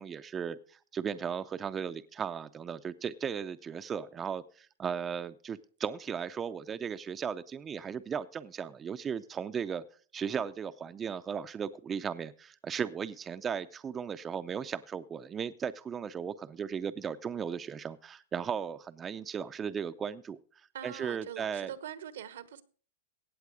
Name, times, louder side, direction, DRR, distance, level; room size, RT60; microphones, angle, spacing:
voice 1, 0.0-9.8 10.1-20.4 20.8-21.7, right 7 dB, 20° right, 0.5 m, -36 dB
voice 2, 20.7-22.6, right 10 dB, 80° right, 1.1 m, -43 dB
16.5 x 7.5 x 4.9 m
hypercardioid pair, 130°, 0 cm